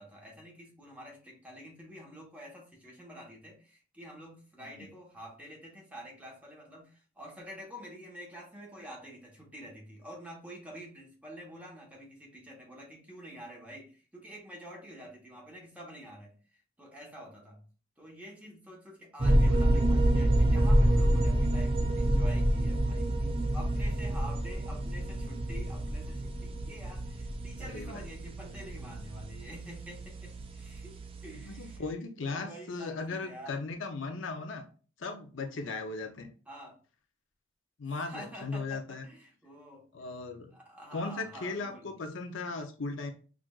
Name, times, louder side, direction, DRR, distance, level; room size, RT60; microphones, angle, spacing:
voice 1, 0.0-17.6 18.0-32.0 32.3-33.6 36.5-36.8 38.0-39.8 40.5-41.9, equal, 10° right, -2 dB, 1.1 m, -48 dB
sound 1, 19.2-31.8, right 1 dB, 30° right, 0.5 m, -28 dB
voice 2, 27.6-28.1 31.5-34.6 35.0-36.3 37.8-39.0 39.9-40.5 40.9-43.1, left 3 dB, 70° left, 5 dB, 0.6 m, -37 dB
5.9 x 2.5 x 2.3 m, 0.38 s
head